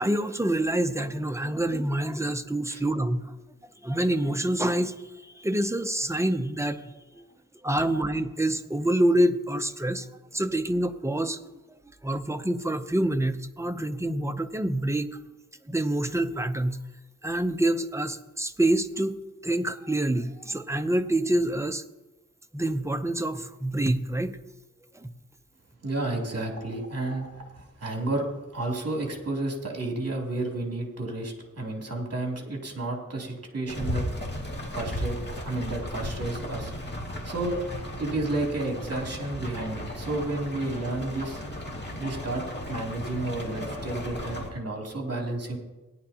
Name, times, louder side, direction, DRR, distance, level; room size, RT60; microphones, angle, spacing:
voice 1, 0.0-3.3 3.8-6.8 7.2-7.3 7.6-10.1 10.3-11.4 12.0-15.1 15.7-16.8 17.2-19.2 19.4-21.8 22.5-24.4 24.9-25.1, right 1 dB, 10° right, 8 dB, 0.6 m, -26 dB
voice 2, 25.8-28.3 28.5-34.0 34.7-35.2 35.4-36.7 37.2-37.6 38.0-41.4 42.0-45.6, right 2 dB, 45° right, -1 dB, 2.7 m, -31 dB
sound 1, 33.7-44.5, equal, 30° left, 2.2 m, -35 dB
17.5 x 10.5 x 2.8 m, 1.1 s
wide cardioid pair, 120°, 34 cm